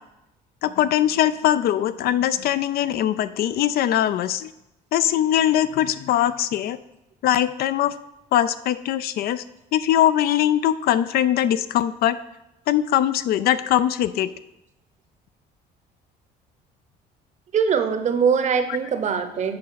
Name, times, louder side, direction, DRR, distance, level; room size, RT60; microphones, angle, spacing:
voice 1, 0.6-4.5 4.9-6.8 7.2-7.9 8.3-9.4 9.7-12.2 12.7-14.3, left 11 dB, 65° left, 14 dB, 0.4 m, -21 dB
voice 2, 17.5-19.6, right 6 dB, 45° right, 8 dB, 0.8 m, -22 dB
7.7 x 4.2 x 5.7 m, 0.89 s
cardioid pair, 110°, 17 cm